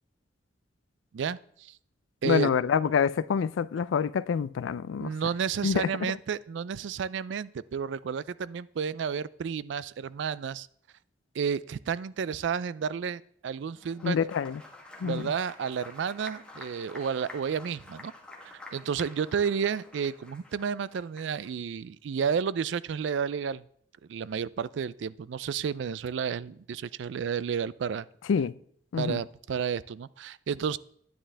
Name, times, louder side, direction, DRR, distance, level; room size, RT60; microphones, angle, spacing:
voice 1, 1.1-1.7 2.2-2.6 5.0-10.7 11.4-14.2 15.0-18.1 18.7-23.6 24.1-28.1 29.0-30.8, right 7 dB, 70° right, 0.3 m, -31 dB
voice 2, 2.2-5.1 5.6-6.1 14.0-14.6 15.0-15.3 28.3-28.5 28.9-29.2, left 6 dB, 85° left, 0.4 m, -27 dB
Applause, 13.7-21.5, left 2 dB, 5° left, 1.2 m, -49 dB
10.0 x 9.7 x 3.3 m
head